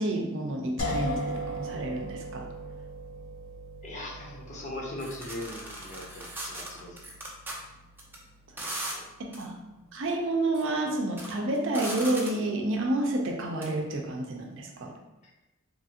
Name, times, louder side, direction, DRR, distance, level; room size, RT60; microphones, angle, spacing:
voice 1, 0.0-2.5 9.2-9.5 9.9-14.9, right 1 dB, 65° right, 2 dB, 0.5 m, -29 dB
sound 1, 0.8-10.6, equal, 85° left, 0.5 m, -39 dB
voice 2, 3.8-7.0 8.9-9.0 15.2-15.3, left 1 dB, 35° left, -2 dB, 0.6 m, -40 dB
sound 2, 5.0-7.5 8.0-8.2 8.6-8.9 9.3-9.4 10.3-10.6 11.0-12.5 13.6-13.7, right 1 dB, 10° right, 0.4 m, -38 dB
2.9 x 2.4 x 2.8 m, 1.0 s
head